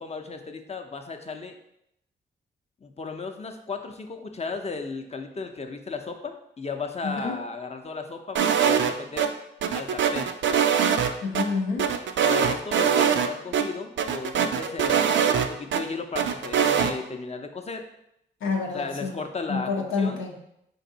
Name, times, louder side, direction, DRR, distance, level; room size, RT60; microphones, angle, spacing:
voice 1, 0.0-1.5 2.8-9.3 9.7-10.3 12.2-17.8 18.7-19.7 20.0-20.2, left 4 dB, 30° left, 5 dB, 0.6 m, -35 dB
voice 2, 7.0-7.4 11.2-11.9 18.4-19.2 19.5-20.4, left 4 dB, 90° left, -1 dB, 0.6 m, -28 dB
sound 1, 8.4-9.3 9.6-11.4 11.8-13.3 13.5-13.6 14.0-15.8 16.2-16.9, right 8 dB, 70° right, 0.4 m, -22 dB
4.6 x 2.6 x 3.9 m, 0.79 s
cardioid pair, 60°, 20 cm